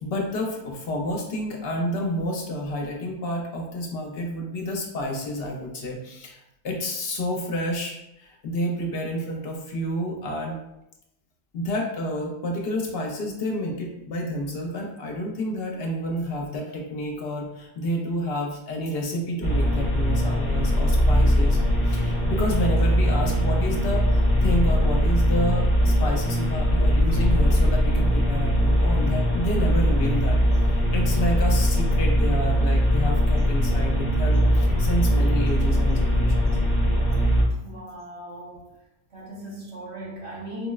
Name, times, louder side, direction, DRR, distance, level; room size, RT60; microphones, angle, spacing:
voice 1, 0.0-6.4 6.6-10.6 11.5-21.6 21.8-30.4 30.9-36.6, equal, 65° left, 0 dB, 0.8 m, -29 dB
sound 1, 19.4-37.4, equal, 35° left, 0.7 m, -21 dB
voice 2, 37.6-38.7 39.1-40.7, equal, 75° right, -5 dB, 1.2 m, -38 dB
4.1 x 2.1 x 2.3 m, 0.86 s
omnidirectional pair, 1.1 m